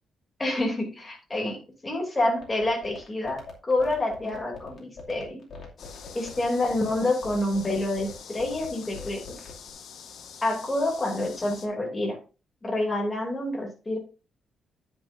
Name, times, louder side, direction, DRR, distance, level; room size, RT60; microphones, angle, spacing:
voice 1, 0.4-5.4 6.1-9.4 10.4-12.2 12.6-14.0, left 1 dB, 15° left, 0 dB, 2.8 m, -28 dB
long sine, 2.4-9.7, left 4 dB, 45° left, 2.5 m, -42 dB
sound 1, 5.8-11.7, left 7 dB, 70° left, 1.2 m, -45 dB
9.9 x 9.0 x 2.6 m, 0.32 s
cardioid pair, 170°, 0 cm